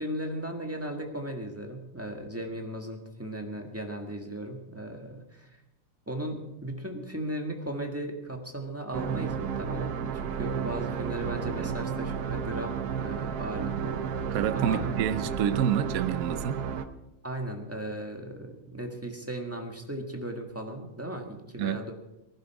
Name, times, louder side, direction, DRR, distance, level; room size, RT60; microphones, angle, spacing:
voice 1, 0.0-5.5 6.1-14.0 14.5-14.8 17.2-21.9, right 1 dB, 10° right, 1.3 m, -36 dB
sound 1, 8.9-16.9, right 7 dB, 60° right, 1.1 m, -32 dB
voice 2, 14.3-16.6 21.6-21.8, right 9 dB, 85° right, 0.7 m, -28 dB
19.5 x 11.5 x 4.8 m
omnidirectional pair, 2.4 m